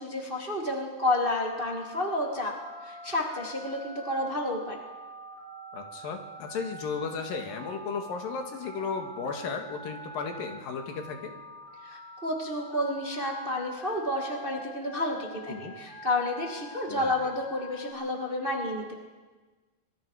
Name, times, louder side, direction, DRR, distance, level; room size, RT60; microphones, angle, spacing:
voice 1, 0.0-2.5 2.8-4.8 11.8-19.0, left 1 dB, 20° right, 0 dB, 1.7 m, -30 dB
Telephone, 1.2-17.9, right 1 dB, 25° left, 8.3 m, -45 dB
voice 2, 5.7-11.4 15.5-15.7 16.9-17.2, left 5 dB, 80° left, 4 dB, 3.5 m, -35 dB
26.0 x 22.0 x 4.8 m, 1.3 s
omnidirectional pair, 4.0 m